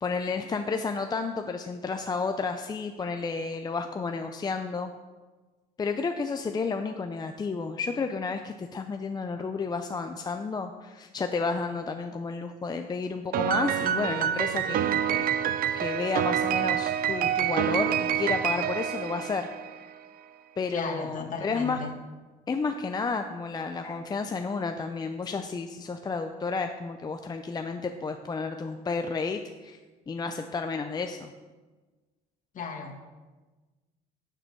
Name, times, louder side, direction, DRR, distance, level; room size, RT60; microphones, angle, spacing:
voice 1, 0.0-4.9 5.8-15.3 15.7-19.5 19.7-19.8 20.6-21.8 22.5-29.8 30.1-31.3, left 4 dB, 25° left, 6 dB, 0.5 m, -31 dB
Piano, 13.3-19.8, right 9 dB, 60° right, 0.5 m, -27 dB
voice 2, 20.7-21.9 32.5-33.0, left 5 dB, 50° left, 1 dB, 1.9 m, -35 dB
12.0 x 6.8 x 4.6 m, 1.3 s
cardioid pair, 110°, 17 cm